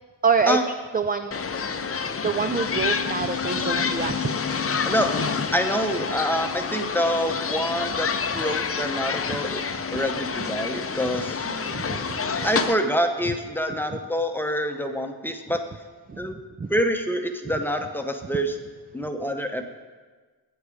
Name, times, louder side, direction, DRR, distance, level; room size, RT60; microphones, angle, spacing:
voice 1, 0.2-0.6 0.9-1.5 2.2-4.8 9.3-9.4 11.4-12.2 16.1-16.2 16.6-16.7, right 5 dB, 25° right, 8 dB, 0.3 m, -26 dB
sound 1, 1.3-12.7, left 5 dB, 35° left, 0.5 m, -28 dB
voice 2, 5.5-9.6 9.9-11.4 12.4-15.6 16.2-16.4 16.7-18.6 18.9-19.6, equal, 5° left, 5 dB, 0.8 m, -26 dB
8.2 x 8.0 x 5.0 m, 1.4 s
wide cardioid pair, 80°, 41 cm